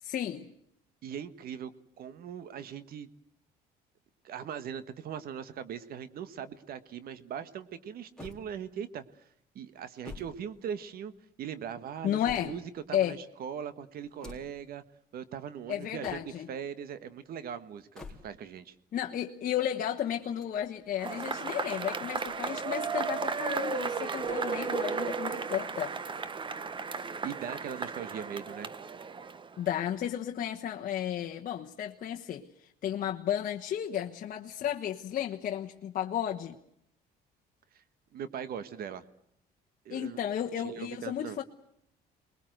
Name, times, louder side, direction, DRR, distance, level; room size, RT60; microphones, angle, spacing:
voice 1, 0.0-0.5 12.0-12.5 12.9-13.2 15.7-16.5 18.9-25.9 29.6-36.6 39.9-41.4, left 10 dB, 55° left, 1.2 m, -33 dB
voice 2, 1.0-1.7 2.0-3.1 4.2-9.0 9.5-11.1 11.4-14.8 15.1-18.7 27.2-28.7 37.7-37.8 38.1-39.0 39.8-40.2 40.6-41.4, right 8 dB, 60° right, 1.4 m, -40 dB
sound 1, 8.2-9.0 9.8-11.2 11.8-12.9 14.0-14.7 15.8-16.6 17.7-18.6 20.1-21.1 22.0-22.9 24.1-24.7 25.0-25.1 26.1-26.9, left 3 dB, 5° left, 3.9 m, -51 dB
Cheering / Applause / Crowd, 21.0-29.7, right 5 dB, 30° right, 1.1 m, -34 dB
24.0 x 21.0 x 7.9 m
cardioid pair, 110°, 17 cm